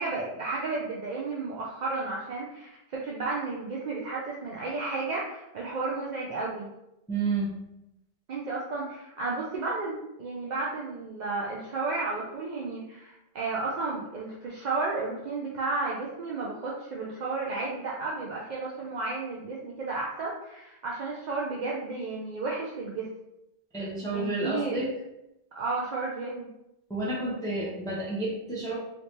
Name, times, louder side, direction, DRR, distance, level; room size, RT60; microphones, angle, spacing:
voice 1, 0.0-6.7 8.3-23.1 24.1-24.9 25.6-26.5, right 3 dB, 55° right, -4 dB, 0.6 m, -33 dB
voice 2, 7.1-7.6 23.7-24.9 26.9-28.8, right 2 dB, 5° left, -5 dB, 0.5 m, -30 dB
3.3 x 3.1 x 2.8 m, 0.88 s
omnidirectional pair, 1.1 m